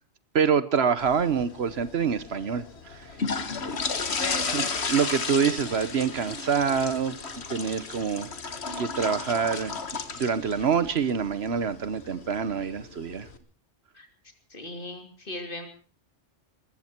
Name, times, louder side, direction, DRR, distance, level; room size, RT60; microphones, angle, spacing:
voice 1, 0.3-2.6 3.9-4.0 4.5-7.1 7.5-8.3 8.8-9.7 10.1-13.3, right 6 dB, 60° right, 1.2 m, -26 dB
sound 1, 1.0-13.4, left 4 dB, 65° left, 1.8 m, -34 dB
voice 2, 4.0-5.0 13.9-14.1 14.5-15.7, left 2 dB, 45° left, 3.1 m, -38 dB
22.0 x 14.5 x 4.4 m
omnidirectional pair, 1.2 m